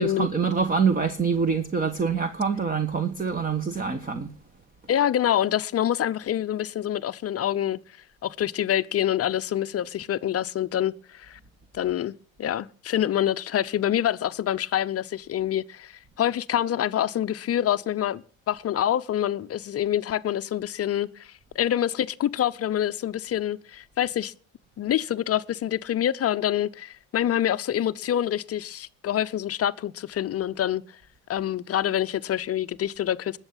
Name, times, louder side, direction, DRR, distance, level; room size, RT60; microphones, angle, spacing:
voice 1, 0.0-4.3, right 5 dB, 20° right, 1.3 m, -25 dB
voice 2, 4.9-7.8 8.2-11.4 11.7-12.1 12.4-24.3 24.8-30.8 31.3-33.4, left 11 dB, 35° left, 0.7 m, -26 dB
20.0 x 7.2 x 5.7 m
hypercardioid pair, 80°, 41 cm